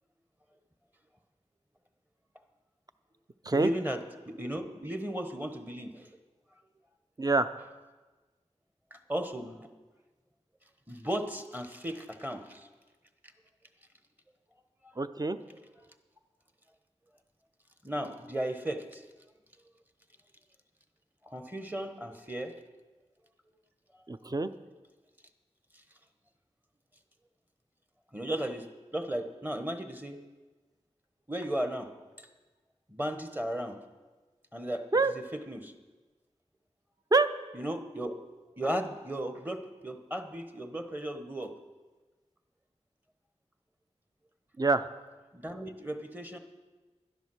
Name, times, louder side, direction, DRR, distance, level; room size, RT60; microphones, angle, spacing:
voice 1, 3.5-6.1 8.9-9.7 10.9-12.7 14.8-14.9 17.8-19.0 21.2-22.5 23.9-24.0 25.7-25.8 28.1-28.6 28.9-30.2 31.3-31.9 32.2-32.3 32.9-33.8 34.5-34.9 35.1-35.7 37.5-38.1 38.6-41.5 45.3-46.4, right 1 dB, 15° right, 7 dB, 1.1 m, -35 dB
voice 2, 15.0-15.4 24.1-24.5 34.9-35.1 37.1-37.3 44.6-44.8, right 3 dB, 30° right, 11 dB, 0.6 m, -25 dB
11.5 x 10.5 x 6.3 m, 1.3 s
wide cardioid pair, 70°, 12 cm